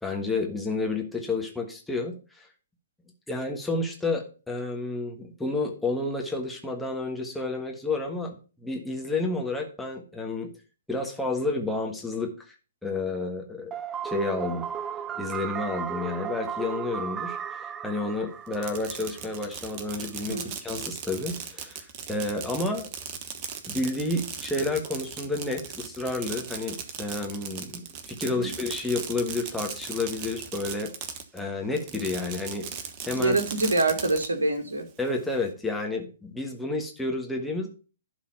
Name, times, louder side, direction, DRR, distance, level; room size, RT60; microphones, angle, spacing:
voice 1, 0.0-2.5 3.3-10.5 10.9-12.5 12.8-13.7 14.0-14.6 15.1-22.9 23.6-30.9 31.3-32.7 33.0-33.4 35.0-37.7, left 3 dB, 5° left, 1 dB, 1.5 m, -30 dB
sound 1, 13.7-19.5, right 8 dB, 15° right, 0.4 m, -35 dB
Fireworks, 18.5-31.4 31.8-34.3, right 7 dB, 30° right, 1.1 m, -38 dB
voice 2, 33.2-34.9, right 2 dB, 70° right, 5 dB, 2.1 m, -25 dB
11.5 x 4.1 x 5.7 m, 0.35 s
figure-of-eight pair, 120°, 0 cm